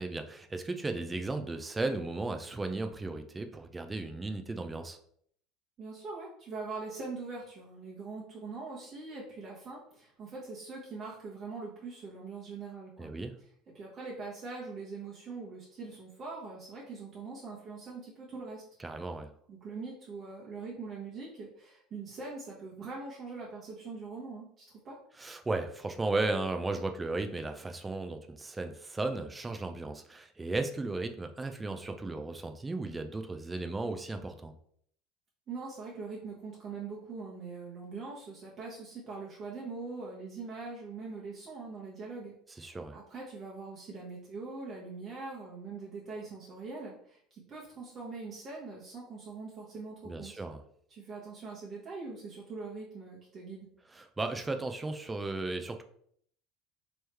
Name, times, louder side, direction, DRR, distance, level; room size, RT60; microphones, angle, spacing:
voice 1, 0.0-5.0 13.0-13.3 18.8-19.3 25.2-34.5 42.6-43.0 50.0-50.6 53.9-55.8, right 2 dB, 15° right, 6 dB, 0.4 m, -35 dB
voice 2, 5.8-13.1 13.7-18.6 19.5-25.0 35.5-50.4 50.9-53.7, right 4 dB, 40° right, -5 dB, 1.1 m, -42 dB
3.0 x 3.0 x 3.3 m, 0.64 s
hypercardioid pair, 70°, 0 cm